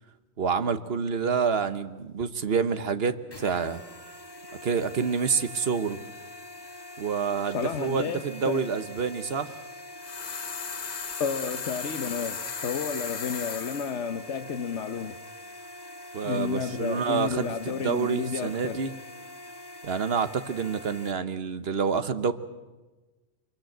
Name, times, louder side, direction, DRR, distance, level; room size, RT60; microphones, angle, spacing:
voice 1, 0.4-3.8 4.6-6.0 7.0-9.6 16.1-18.9 19.8-22.3, right 6 dB, 65° right, 11 dB, 1.3 m, -28 dB
sound 1, 3.3-21.1, left 1 dB, 20° left, 1.4 m, -44 dB
voice 2, 7.5-8.6 11.2-15.2 16.2-18.8, left 6 dB, 90° left, 7 dB, 1.3 m, -31 dB
sound 2, 10.0-14.0, left 5 dB, 40° left, 0.9 m, -36 dB
25.0 x 22.5 x 7.8 m, 1.2 s
omnidirectional pair, 1.1 m